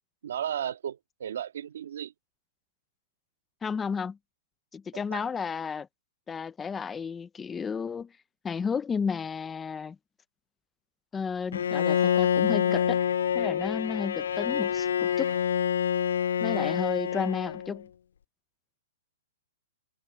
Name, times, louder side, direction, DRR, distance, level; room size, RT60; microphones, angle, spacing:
voice 1, 0.2-2.1 4.9-5.3, right 9 dB, 65° right, 1.9 m, -35 dB
voice 2, 3.6-4.2 4.7-5.9 6.3-8.1 8.4-10.0 11.1-13.0 13.3-15.3 16.4-17.9, left 6 dB, 10° left, 0.4 m, -32 dB
Bowed string instrument, 11.5-17.8, left 9 dB, 75° left, 0.3 m, -27 dB
hypercardioid pair, 175°, 0 cm